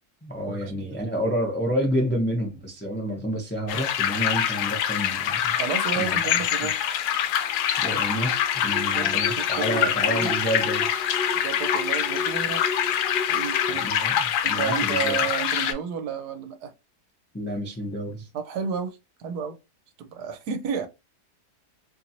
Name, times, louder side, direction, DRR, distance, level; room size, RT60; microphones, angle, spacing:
voice 1, 0.2-5.6 6.0-6.2 7.8-10.9 13.7-15.2 17.3-18.3, equal, 15° left, 0.3 m, -29 dB
sound 1, 3.7-15.7, left 10 dB, 75° left, 1.1 m, -25 dB
voice 2, 5.6-6.8 8.8-10.3 11.4-12.7 13.3-13.8 14.4-16.7 18.3-19.6 20.0-20.9, right 7 dB, 75° right, 1.1 m, -32 dB
sound 2, 7.4-13.9, left 3 dB, 50° left, 0.7 m, -35 dB
2.9 x 2.8 x 2.6 m
omnidirectional pair, 1.8 m